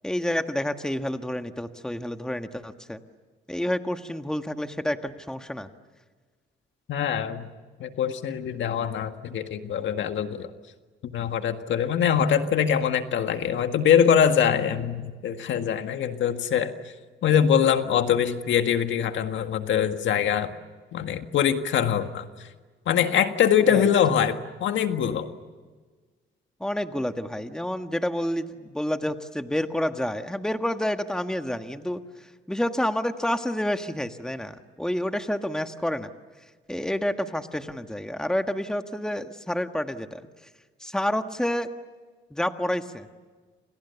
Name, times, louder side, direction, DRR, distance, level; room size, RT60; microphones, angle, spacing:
voice 1, 0.0-3.0 3.5-5.7 23.7-23.9 26.6-32.0 32.5-36.1 36.7-40.3 40.8-41.7 42.3-43.1, left 1 dB, 5° left, 7 dB, 1.6 m, -29 dB
voice 2, 6.9-7.5 7.8-10.5 11.0-16.7 17.2-20.5 20.9-22.5 22.8-25.3, left 8 dB, 70° left, 7 dB, 1.8 m, -23 dB
29.5 x 27.5 x 7.1 m, 1.4 s
cardioid pair, 90°, 20 cm